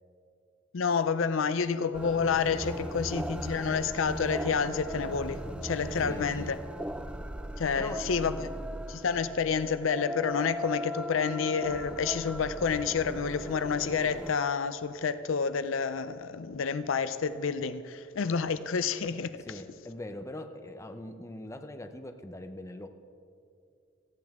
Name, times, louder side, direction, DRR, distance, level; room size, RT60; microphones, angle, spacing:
voice 1, 0.7-6.6 7.6-8.5 8.9-19.4, left 6 dB, 70° left, 0.5 m, -29 dB
sound 1, 1.9-14.3, equal, 5° right, 0.3 m, -38 dB
voice 2, 6.0-6.5 7.7-8.0 19.4-22.9, left 1 dB, 15° left, 0.7 m, -42 dB
18.0 x 14.5 x 3.6 m
head